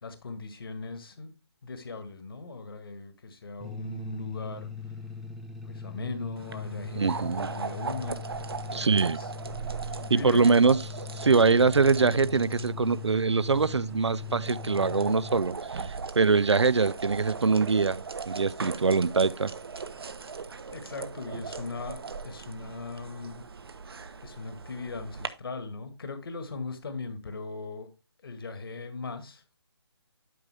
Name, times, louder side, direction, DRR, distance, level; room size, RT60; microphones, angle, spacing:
voice 1, 0.0-1.3 1.6-4.7 5.6-8.2 8.7-9.3 10.1-10.4 18.6-18.7 20.7-23.4 24.2-27.9 28.2-29.6, left 3 dB, 55° left, 1.6 m, -39 dB
sound 1, 3.6-15.4, left 5 dB, ahead, 0.5 m, -40 dB
sound 2, 6.4-25.3, right 5 dB, 60° right, 1.1 m, -39 dB
voice 2, 6.9-7.5 8.7-9.2 10.1-10.8 11.2-19.5, right 4 dB, 90° right, 0.5 m, -23 dB
12.0 x 5.4 x 3.4 m
figure-of-eight pair, 155°, 14 cm